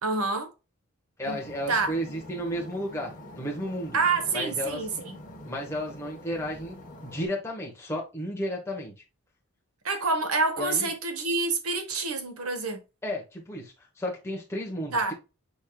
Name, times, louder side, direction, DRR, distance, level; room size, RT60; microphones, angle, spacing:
voice 1, 0.0-0.5 1.3-1.4 1.7-1.9 3.9-5.2 9.8-12.8 14.9-15.1, right 3 dB, 80° right, 1.2 m, -27 dB
sound 1, 1.2-7.3, left 1 dB, 35° left, 1.3 m, -45 dB
voice 2, 1.2-4.0 4.3-4.8 5.4-6.8 7.0-8.9 10.6-10.9 13.0-15.1, equal, 10° left, 1.0 m, -33 dB
6.2 x 3.6 x 2.3 m
head